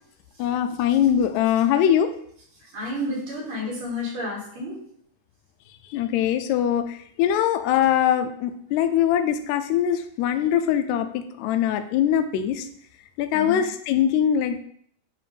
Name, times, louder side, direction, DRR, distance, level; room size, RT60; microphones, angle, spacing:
voice 1, 0.4-2.1 5.9-12.7 13.2-14.6, left 10 dB, 75° left, 8 dB, 1.7 m, -22 dB
voice 2, 2.7-4.8 13.3-13.6, left 1 dB, 90° right, -6 dB, 4.2 m, -30 dB
8.8 x 3.0 x 5.1 m, 0.64 s
omnidirectional pair, 3.7 m